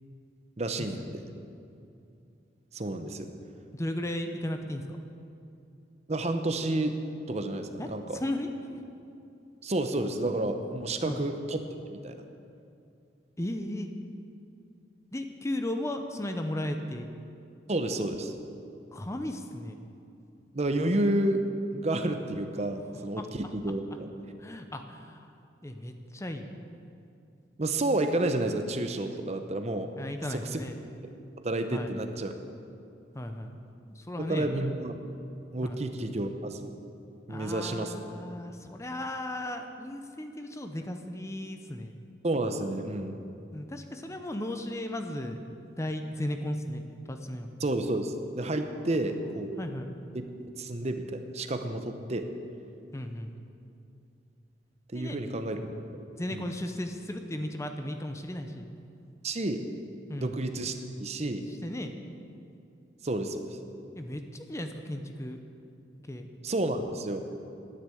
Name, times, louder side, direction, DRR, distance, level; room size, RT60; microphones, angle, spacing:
voice 1, 0.6-1.2 2.7-3.3 6.1-7.0 7.3-8.2 9.6-11.6 11.9-12.2 17.7-18.3 20.5-24.1 27.6-29.9 30.3-30.6 31.4-32.3 34.2-34.9 35.5-36.7 37.3-38.0 42.2-43.2 47.6-49.6 50.1-50.2 50.6-52.3 54.9-56.0 56.3-56.5 59.2-59.6 60.2-61.5 63.0-63.6 66.4-67.2, right 1 dB, 35° right, 7 dB, 0.8 m, -30 dB
voice 2, 3.7-5.0 7.8-8.5 11.0-11.2 13.4-13.9 15.1-17.1 18.9-19.7 23.2-23.3 24.4-25.3 25.6-26.5 30.0-30.8 31.7-31.9 33.1-33.6 33.9-34.5 35.6-35.8 37.3-42.0 43.5-45.4 45.8-47.5 49.3-49.9 52.9-53.3 54.9-55.2 56.1-58.7 60.1-60.4 61.6-61.9 64.0-65.4 66.1-66.3, left 1 dB, 15° left, 6 dB, 0.7 m, -35 dB
10.5 x 9.9 x 8.4 m, 2.6 s
head